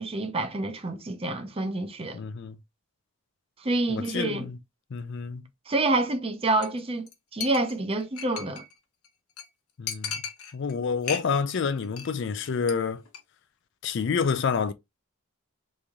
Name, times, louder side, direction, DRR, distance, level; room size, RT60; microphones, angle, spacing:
voice 1, 0.0-2.2 3.6-4.5 5.7-8.6, right 2 dB, 25° right, 0.5 m, -28 dB
voice 2, 2.1-2.6 3.9-4.6 4.9-5.5 9.8-10.1 10.5-13.0 13.8-14.7, left 5 dB, 55° left, 0.4 m, -28 dB
Chink clink, 6.6-6.8 7.1-7.2 7.4-8.7 9.0-9.1 9.4-9.5 9.9-10.7 11.0-11.6 11.8-12.1 12.4-12.7 13.0-13.2, left 7 dB, 80° left, 0.8 m, -36 dB
3.1 x 2.6 x 3.5 m
head